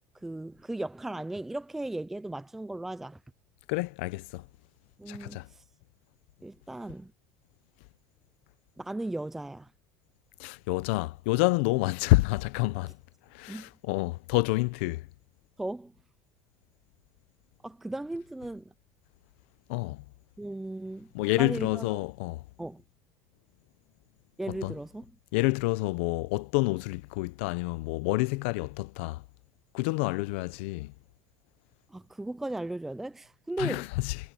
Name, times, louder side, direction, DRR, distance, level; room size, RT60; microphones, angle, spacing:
voice 1, 0.2-3.2 5.0-5.6 6.4-7.1 8.8-9.7 13.5-13.7 15.6-15.9 17.6-18.6 20.4-22.0 22.6-22.8 24.4-25.1 31.9-33.9, right 2 dB, 5° right, 0.3 m, -36 dB
voice 2, 3.7-4.4 5.1-5.5 10.4-12.9 13.3-15.0 19.7-20.0 21.1-22.4 24.5-24.7 25.3-29.2 29.7-30.9 33.6-34.2, left 22 dB, 80° left, 0.6 m, -28 dB
cardioid pair, 170°, 6 cm